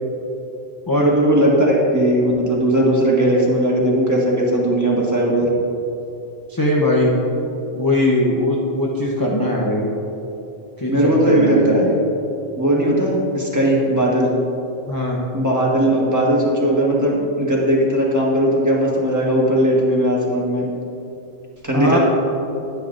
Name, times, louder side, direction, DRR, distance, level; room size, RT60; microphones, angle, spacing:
voice 1, 1.0-5.5 10.9-11.9 12.6-14.3 15.3-20.6 21.6-22.0, right 1 dB, 15° right, -4 dB, 1.4 m, -18 dB
voice 2, 6.5-7.1 7.7-9.9 10.8-12.0 14.9-15.2 21.7-22.0, left 1 dB, 20° left, -3 dB, 0.7 m, -20 dB
10.5 x 9.6 x 2.6 m, 2.9 s
omnidirectional pair, 1.2 m